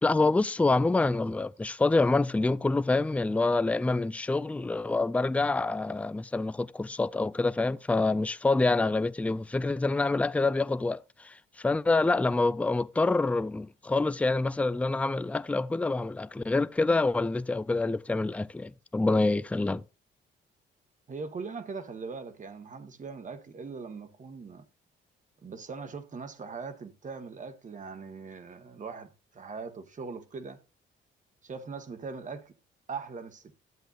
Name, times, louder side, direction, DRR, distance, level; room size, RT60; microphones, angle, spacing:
voice 1, 0.0-11.3 11.6-19.8, left 3 dB, 5° left, 0.4 m, -26 dB
voice 2, 21.1-24.6 25.4-30.6 31.4-32.5 32.9-33.5, right 4 dB, 40° right, 1.3 m, -40 dB
12.5 x 7.9 x 2.5 m
cardioid pair, 90°, 20 cm